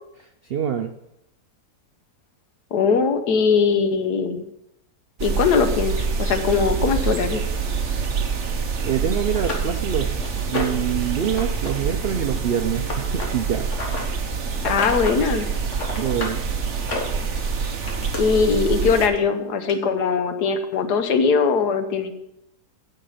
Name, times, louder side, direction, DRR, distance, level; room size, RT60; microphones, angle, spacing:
voice 1, 0.4-0.9 8.5-10.2 10.5-13.7 15.9-16.4, right 8 dB, 75° right, 7 dB, 0.5 m, -25 dB
voice 2, 2.7-4.4 5.2-7.4 14.6-15.5 18.2-22.2, left 5 dB, 80° left, 8 dB, 1.5 m, -21 dB
sound 1, 5.2-19.1, right 5 dB, 50° right, 1.2 m, -26 dB
sound 2, 8.8-8.9 9.3-10.9 11.3-11.7 12.0-14.0 14.5-15.2 15.5-16.4 16.8-18.2 19.2-19.3 19.7-19.8, left 2 dB, 50° left, 1.9 m, -31 dB
9.2 x 6.6 x 5.7 m, 0.81 s
omnidirectional pair, 1.7 m